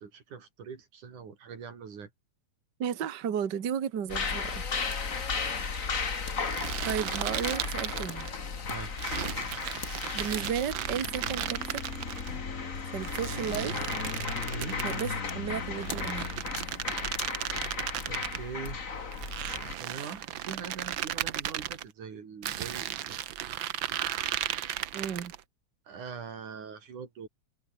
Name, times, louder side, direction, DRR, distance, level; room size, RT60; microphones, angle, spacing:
voice 1, 0.0-2.1 8.7-8.9 14.5-14.8 18.1-18.8 19.8-23.3 25.9-27.3, right 6 dB, 90° right, 5.1 m, -42 dB
voice 2, 2.8-4.6 6.8-8.3 9.8-11.8 12.9-13.8 14.8-16.3 24.9-25.3, right 8 dB, 40° right, 1.9 m, -34 dB
sound 1, 4.1-19.8, left 5 dB, 30° left, 2.0 m, -35 dB
sound 2, 6.5-8.4 9.0-12.3 13.0-15.1 15.8-18.4 19.1-21.8 22.4-25.4, right 11 dB, 65° right, 1.2 m, -35 dB
omnidirectional pair, 3.4 m